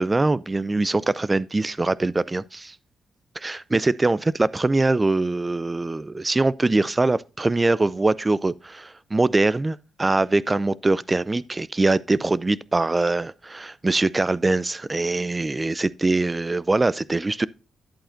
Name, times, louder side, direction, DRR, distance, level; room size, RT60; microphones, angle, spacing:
voice 1, 0.0-2.7 3.4-17.5, right 2 dB, 25° right, 0.4 m, -23 dB
10.5 x 8.5 x 2.6 m
cardioid pair, 70°, 0 cm